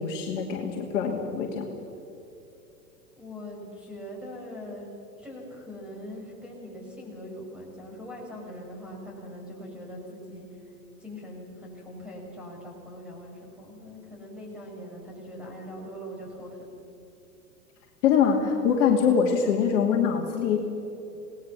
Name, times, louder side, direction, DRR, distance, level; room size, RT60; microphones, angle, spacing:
voice 1, 0.0-1.7 18.0-20.6, left 7 dB, 50° left, 1 dB, 2.7 m, -23 dB
voice 2, 3.1-4.9 5.2-10.7 11.0-16.6, equal, ahead, -2 dB, 6.8 m, -41 dB
28.0 x 19.0 x 6.3 m, 2.9 s
figure-of-eight pair, 105°, 49 cm